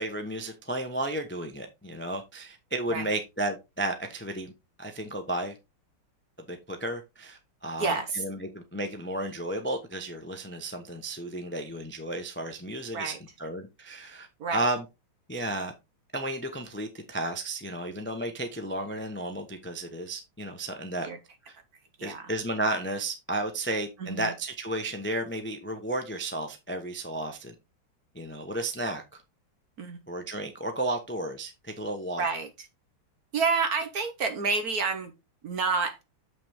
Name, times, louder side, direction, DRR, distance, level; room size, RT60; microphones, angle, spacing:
voice 1, 0.0-4.5 4.8-5.5 6.5-13.1 13.4-14.8 15.3-15.7 16.1-21.1 21.5-21.6 22.0-27.5 28.1-29.2 30.1-32.3, right 1 dB, 15° left, 0.5 m, -33 dB
voice 2, 7.8-8.2 12.9-13.2 14.4-14.6 21.0-21.2 22.0-22.3 24.0-24.3 29.8-30.0 32.2-32.5 33.3-35.1 35.4-36.0, right 4 dB, 55° right, 1.2 m, -29 dB
7.7 x 6.0 x 3.5 m
omnidirectional pair, 2.3 m